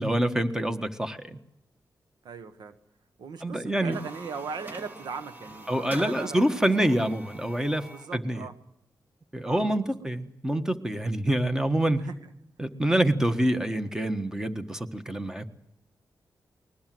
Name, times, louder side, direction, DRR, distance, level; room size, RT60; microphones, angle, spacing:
voice 1, 0.0-1.4 3.4-4.0 5.7-8.4 9.3-12.1 12.6-15.5, right 1 dB, 10° right, 8 dB, 1.5 m, -26 dB
voice 2, 2.2-2.8 3.2-6.5 6.8-7.0 7.9-8.6 9.4-9.9 12.1-12.2, right 5 dB, 85° right, 11 dB, 1.3 m, -39 dB
sound 1, 3.7-8.2, right 1 dB, 25° right, 2.2 m, -45 dB
21.5 x 20.0 x 7.8 m, 0.80 s
wide cardioid pair, 95°, 7 cm